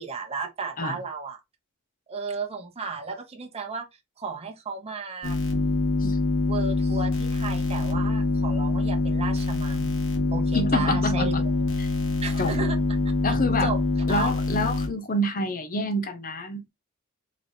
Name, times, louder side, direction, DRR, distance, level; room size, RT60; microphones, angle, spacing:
voice 1, 0.0-1.4 2.1-3.9 4.2-5.4 6.5-9.9 10.3-11.3 12.2-12.8 13.3-13.8 14.1-14.3, right 4 dB, 30° right, 0.7 m, -34 dB
sound 1, 5.2-14.9, left 3 dB, 65° left, 1.3 m, -25 dB
voice 2, 10.5-11.4 11.8-11.9 12.4-12.5 13.2-13.7 14.1-16.6, left 1 dB, 40° left, 0.8 m, -27 dB
4.5 x 3.1 x 2.7 m
head